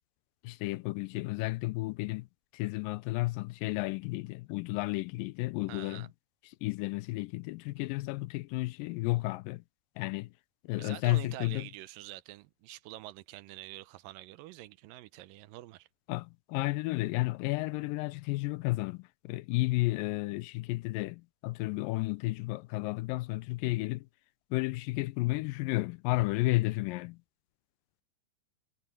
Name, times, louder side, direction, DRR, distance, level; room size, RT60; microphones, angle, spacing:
voice 1, 0.4-2.3 2.5-6.1 6.6-9.6 10.0-10.3 10.6-11.7 16.1-24.1 24.5-27.2, left 21 dB, 85° left, 2.3 m, -32 dB
voice 2, 5.7-6.1 10.8-15.9, right 16 dB, 85° right, 2.4 m, -46 dB
omnidirectional pair, 3.9 m